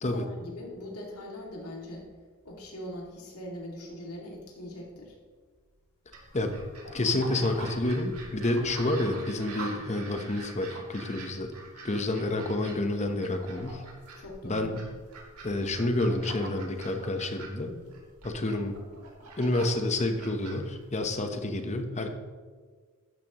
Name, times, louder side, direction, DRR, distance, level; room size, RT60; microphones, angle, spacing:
voice 1, 0.1-2.1 2.4-5.2 14.2-14.7, left 1 dB, 85° left, -2 dB, 2.3 m, -41 dB
sound 1, 6.1-21.3, right 2 dB, 85° right, 2.7 m, -44 dB
voice 2, 6.9-11.5 11.8-13.8 14.4-14.8 15.4-17.7 18.2-18.8 19.4-22.1, left 2 dB, 30° left, 6 dB, 0.9 m, -29 dB
12.5 x 10.0 x 3.0 m, 1.6 s
head